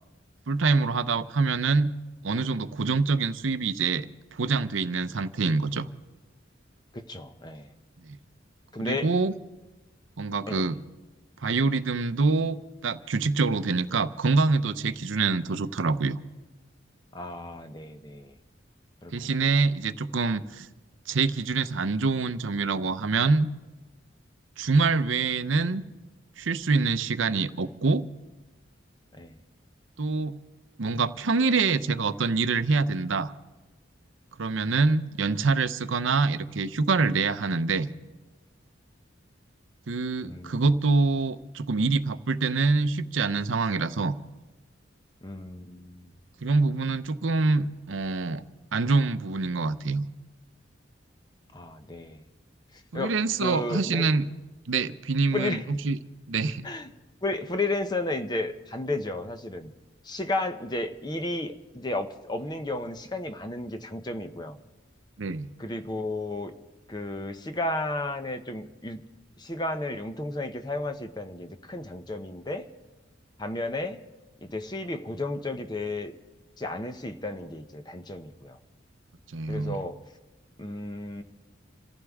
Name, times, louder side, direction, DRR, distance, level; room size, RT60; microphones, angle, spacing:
voice 1, 0.5-1.9 2.2-4.1 4.3-5.9 8.0-8.2 8.8-9.3 10.2-10.8 11.4-12.6 12.8-16.2 19.1-20.7 21.1-23.5 24.6-25.8 26.4-28.0 30.0-30.4 30.8-33.3 34.4-37.9 39.9-44.2 46.4-48.4 48.7-50.0 52.9-54.3 54.7-56.0 56.3-56.7 65.2-65.5 79.3-79.8, right 4 dB, 80° right, 12 dB, 0.7 m, -25 dB
voice 2, 6.9-7.7 8.7-9.1 10.5-10.7 17.1-18.3 19.0-19.4 29.1-29.3 40.2-40.6 45.2-46.1 51.5-52.2 52.7-54.1 55.3-55.7 56.6-56.9 57.2-59.7 60.0-64.6 65.6-66.5 66.9-69.0 69.4-72.7 73.4-74.0 74.4-76.2 76.6-78.6 79.5-80.0 80.6-81.2, left 2 dB, 20° left, 8 dB, 0.8 m, -33 dB
27.5 x 14.5 x 3.6 m, 1.1 s
head